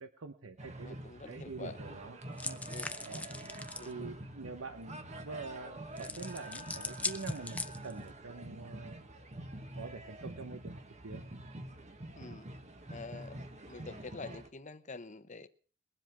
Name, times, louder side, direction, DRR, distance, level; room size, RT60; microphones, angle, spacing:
voice 1, 0.0-1.0 1.3-2.2 2.4-2.6 3.0-3.3 3.8-9.0 9.8-11.2, right 4 dB, 85° right, 1.0 m, -45 dB
sound 1, 0.6-14.5, right 1 dB, 35° right, 1.4 m, -46 dB
voice 2, 0.8-2.0 2.7-3.0 3.8-4.1 12.2-12.5 12.9-13.4 13.7-15.5, left 3 dB, 35° left, 0.9 m, -47 dB
sound 2, 2.4-3.9 6.0-8.1, left 2 dB, 5° left, 0.6 m, -40 dB
21.5 x 7.7 x 6.0 m
head